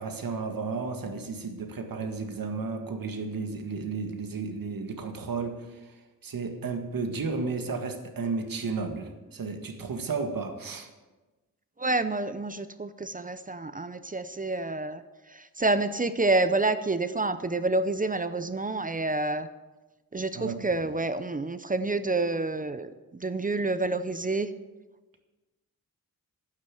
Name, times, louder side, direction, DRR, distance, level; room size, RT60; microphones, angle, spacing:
voice 1, 0.0-10.9 20.3-20.7, right 4 dB, 65° right, 5 dB, 1.8 m, -33 dB
voice 2, 11.8-15.0 15.3-19.5 20.1-24.5, right 2 dB, 25° right, 12 dB, 0.6 m, -28 dB
11.0 x 9.9 x 7.7 m, 1.2 s
wide cardioid pair, 120°, 36 cm